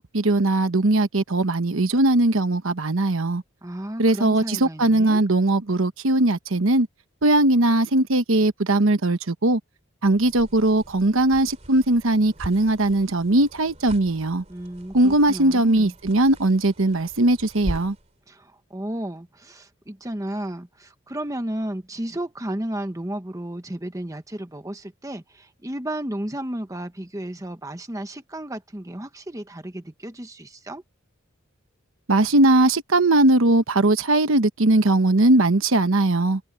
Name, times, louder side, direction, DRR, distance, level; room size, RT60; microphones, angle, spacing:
voice 1, 0.0-3.4 4.0-6.9 7.2-9.6 10.0-14.4 14.9-17.9 32.1-36.4, right 2 dB, 75° right, 1.1 m, -19 dB
voice 2, 3.6-5.2 14.5-15.9 18.3-30.8, right 1 dB, 15° right, 1.1 m, -33 dB
sound 1, 10.0-18.1, equal, 35° right, 3.1 m, -40 dB
head